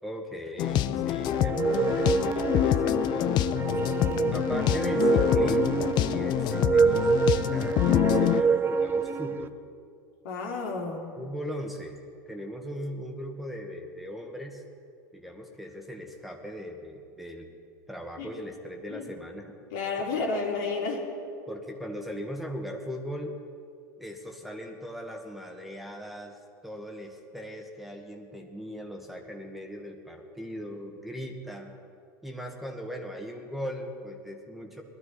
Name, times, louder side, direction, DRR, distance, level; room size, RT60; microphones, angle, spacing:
voice 1, 0.0-3.5 4.3-9.5 11.2-14.6 15.1-17.5 17.9-19.6 21.5-23.4 24.0-31.7 32.2-34.8, equal, ahead, 2 dB, 1.5 m, -39 dB
sound 1, 0.6-8.4, left 13 dB, 45° left, 0.5 m, -26 dB
sound 2, 1.3-9.5, right 5 dB, 20° right, 0.6 m, -27 dB
voice 2, 3.8-4.4 10.2-11.1 18.2-18.3 18.9-19.1 19.7-21.1, left 4 dB, 75° left, -1 dB, 3.1 m, -32 dB
19.5 x 12.5 x 4.2 m, 2.4 s
hypercardioid pair, 95°, 10 cm